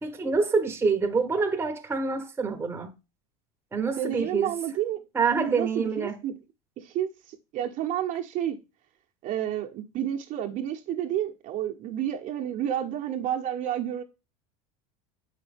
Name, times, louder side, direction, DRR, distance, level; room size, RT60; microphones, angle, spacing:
voice 1, 0.0-2.9 3.7-4.5 5.1-6.2, right 4 dB, 15° right, 1.0 m, -26 dB
voice 2, 4.0-5.0 5.3-6.3 6.8-7.1 7.5-8.6 9.2-14.0, right 10 dB, 45° right, 1.0 m, -30 dB
6.8 x 5.0 x 3.5 m
supercardioid pair, 105°, 18 cm